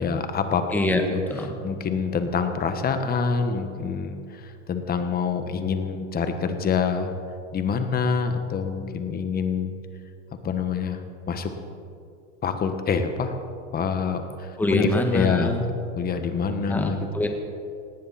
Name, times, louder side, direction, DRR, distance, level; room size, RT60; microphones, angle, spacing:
voice 1, 0.0-0.6 1.1-1.2 1.6-7.1 7.5-9.7 10.4-11.5 12.4-13.4 13.7-15.6 16.0-17.1, left 5 dB, 25° left, 7 dB, 1.5 m, -26 dB
voice 2, 0.7-1.0 1.3-1.6 14.6-15.6 16.7-17.3, left 2 dB, 5° left, 3 dB, 1.7 m, -24 dB
18.5 x 17.5 x 4.3 m, 2.5 s
supercardioid pair, 130°, 38 cm